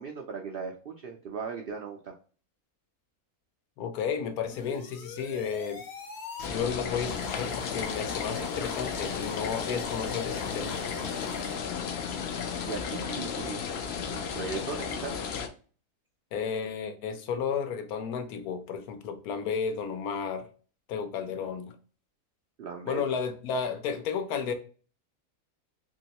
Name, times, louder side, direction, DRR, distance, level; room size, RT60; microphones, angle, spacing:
voice 1, 0.0-2.2 12.7-15.2 22.6-23.0, right 5 dB, 85° right, 0.4 m, -38 dB
voice 2, 3.8-5.8 6.5-10.8 16.3-20.5 20.9-21.8 22.9-24.5, left 6 dB, 85° left, 1.1 m, -33 dB
sound 1, 4.5-11.6, left 3 dB, 55° left, 0.9 m, -42 dB
sound 2, 6.4-15.5, left 6 dB, 70° left, 0.6 m, -34 dB
3.0 x 2.9 x 2.8 m
omnidirectional pair, 1.6 m